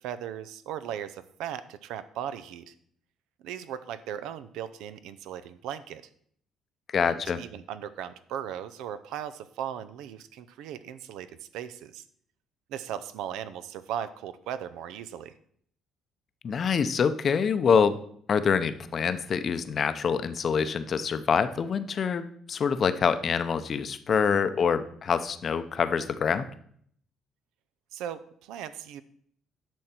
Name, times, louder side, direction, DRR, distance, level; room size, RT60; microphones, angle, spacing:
voice 1, 0.0-2.7 3.4-6.0 7.1-12.0 12.7-15.3 27.9-29.0, right 9 dB, 90° right, 13 dB, 0.6 m, -37 dB
voice 2, 6.9-7.4 16.4-18.0 18.3-26.5, left 6 dB, 40° left, 12 dB, 0.6 m, -25 dB
10.5 x 6.4 x 4.4 m, 0.63 s
cardioid pair, 130°, 0 cm